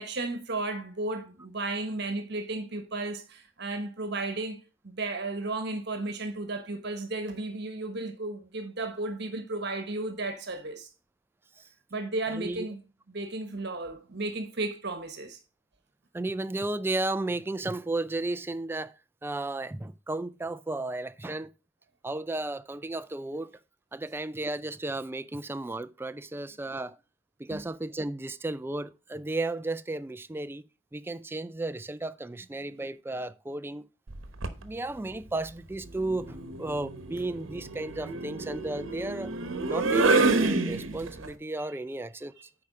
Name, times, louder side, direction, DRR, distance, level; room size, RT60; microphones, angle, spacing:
voice 1, 0.0-10.9 11.9-12.8 13.1-15.4 27.5-27.6, right 2 dB, 55° right, 1.2 m, -34 dB
voice 2, 12.3-12.7 16.1-21.5 22.0-23.5 23.9-27.0 27.4-30.6 30.9-33.9 34.6-39.3 39.7-42.3, right 2 dB, 10° right, 0.3 m, -34 dB
sound 1, 34.1-34.6 36.0-41.3, right 3 dB, 85° right, 1.0 m, -28 dB
8.7 x 4.8 x 4.8 m
head